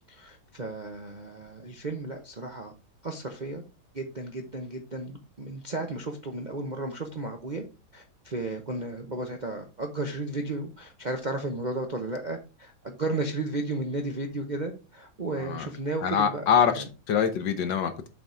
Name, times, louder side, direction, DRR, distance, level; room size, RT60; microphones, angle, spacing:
voice 1, 0.1-2.7 3.0-3.6 3.9-7.6 7.9-16.8, right 2 dB, 40° right, 2 dB, 0.6 m, -34 dB
voice 2, 15.3-15.7 16.0-18.1, left 7 dB, 65° left, 8 dB, 1.6 m, -25 dB
7.5 x 4.1 x 4.8 m, 0.32 s
omnidirectional pair, 2.2 m